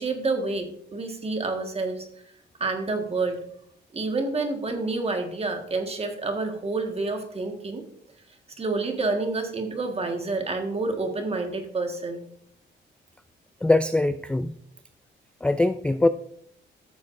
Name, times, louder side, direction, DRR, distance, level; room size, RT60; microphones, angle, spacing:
voice 1, 0.0-2.1 2.6-3.4 3.9-7.8 8.6-12.2, right 3 dB, 30° right, 4 dB, 1.7 m, -28 dB
voice 2, 13.6-14.5 15.4-16.1, left 2 dB, 5° left, 11 dB, 0.3 m, -22 dB
14.0 x 7.1 x 2.6 m, 0.67 s
cardioid pair, 90°, 20 cm